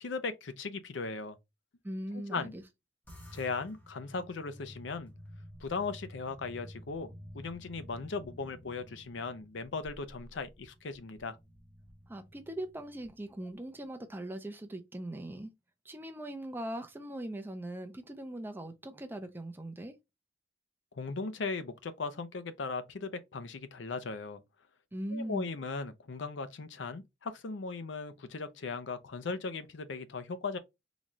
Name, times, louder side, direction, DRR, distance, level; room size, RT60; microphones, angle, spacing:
voice 1, 0.0-1.4 2.3-2.5 3.3-5.1 5.6-7.1 7.3-11.4 20.9-24.4 25.1-30.6, left 4 dB, 75° left, 0.6 m, -38 dB
voice 2, 1.8-2.6 12.1-15.5 15.8-19.9 24.9-25.5, right 1 dB, 10° right, 0.5 m, -40 dB
sound 1, 3.1-13.7, equal, 10° left, 0.9 m, -52 dB
4.0 x 2.3 x 3.0 m
head